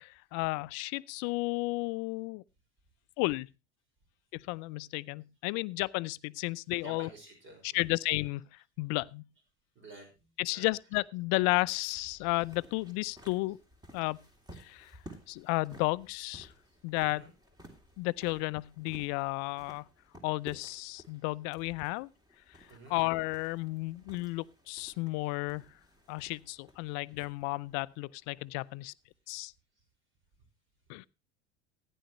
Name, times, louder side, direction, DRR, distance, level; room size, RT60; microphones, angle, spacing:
voice 1, 0.0-2.4 3.2-3.5 4.3-7.1 7.6-9.3 10.4-13.6 13.9-14.2 14.5-14.9 15.3-16.5 16.8-17.3 18.0-19.9 20.2-22.1 22.5-25.7 26.1-28.9 29.3-29.5 30.9-31.1, left 23 dB, 55° left, 0.6 m, -33 dB
voice 2, 6.8-7.8 9.8-10.1 10.5-10.7 17.0-17.3 22.7-23.0, right 1 dB, 35° right, 5.3 m, -50 dB
sound 1, 11.2-28.8, equal, 10° right, 3.0 m, -56 dB
15.0 x 10.0 x 3.1 m
hypercardioid pair, 85°, 33 cm